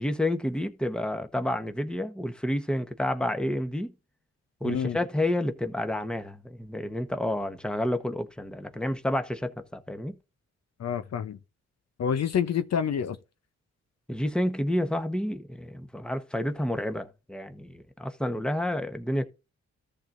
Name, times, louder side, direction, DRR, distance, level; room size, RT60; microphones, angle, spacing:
voice 1, 0.0-3.9 4.6-10.2 14.1-19.2, left 1 dB, 5° left, 1.1 m, -29 dB
voice 2, 4.6-5.0 10.8-11.4 12.0-13.2, left 8 dB, 60° left, 0.7 m, -28 dB
14.0 x 6.8 x 2.6 m
cardioid pair, 65°, 29 cm